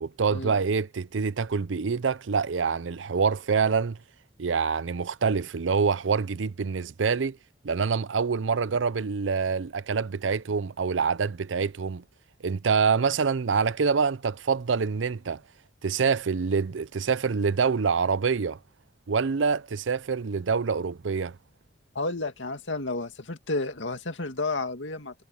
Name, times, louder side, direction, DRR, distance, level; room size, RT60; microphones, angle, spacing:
voice 1, 0.0-4.0 4.4-7.4 7.6-12.0 12.4-15.4 15.8-18.6 19.1-21.4, right 5 dB, 85° right, 0.6 m, -26 dB
voice 2, 21.9-25.1, left 2 dB, 85° left, 2.2 m, -31 dB
head